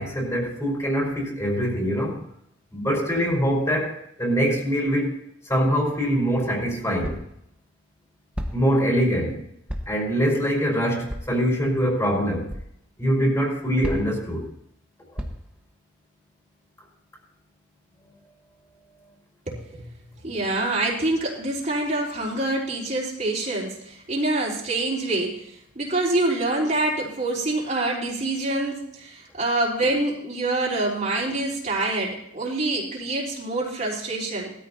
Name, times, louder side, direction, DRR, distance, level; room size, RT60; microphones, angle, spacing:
voice 1, 0.0-2.2 2.7-7.2 8.5-9.4 9.9-12.6 13.0-14.5, equal, 15° left, -2 dB, 4.5 m, -24 dB
sound 1, 7.0-7.4 8.3-8.8 9.7-10.1 11.1-11.4 12.5-12.7 13.8-14.3 15.2-15.6, equal, 5° right, 1.3 m, -33 dB
voice 2, 19.5-19.9 20.2-25.4 25.8-34.5, right 2 dB, 40° right, -4 dB, 4.1 m, -26 dB
20.0 x 14.0 x 2.9 m, 0.74 s
head